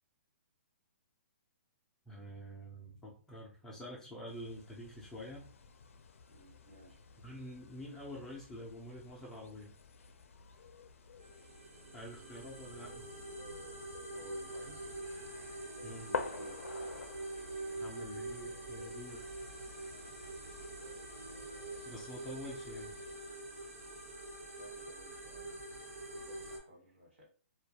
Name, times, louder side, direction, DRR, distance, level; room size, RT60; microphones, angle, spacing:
voice 1, 2.1-5.5 7.2-9.7 11.9-13.1 15.8-16.1 17.7-19.3 21.8-22.9, equal, 5° left, -4 dB, 0.4 m, -47 dB
sound 1, 4.3-23.2, left 6 dB, 80° left, 0.4 m, -50 dB
voice 2, 6.3-7.0 14.1-14.9 15.9-16.6 19.9-20.2 24.5-27.3, left 1 dB, 60° right, -1 dB, 1.2 m, -58 dB
sound 2, 11.2-26.6, right 2 dB, 80° right, 1.0 m, -45 dB
Harp, 14.0-25.2, equal, 40° right, 0.7 m, -59 dB
2.2 x 2.2 x 2.7 m, 0.40 s
hypercardioid pair, 160°, 7 cm